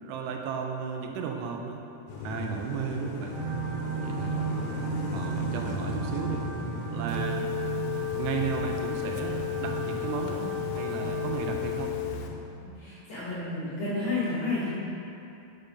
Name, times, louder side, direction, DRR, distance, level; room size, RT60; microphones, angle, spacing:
voice 1, 0.0-1.8 2.2-3.4 4.0-4.5 5.1-6.5 6.9-7.4 8.1-11.9, right 6 dB, 85° right, 2 dB, 2.6 m, -34 dB
sound 1, 2.1-12.4, left 4 dB, 75° left, 2.2 m, -38 dB
sound 2, 3.3-11.5, right 7 dB, 65° right, 2.8 m, -35 dB
Telephone, 7.1-12.3, left 18 dB, 90° left, 2.8 m, -33 dB
voice 2, 12.8-14.7, left 2 dB, 55° left, -10 dB, 2.0 m, -31 dB
6.6 x 5.5 x 5.1 m, 2.8 s
omnidirectional pair, 4.9 m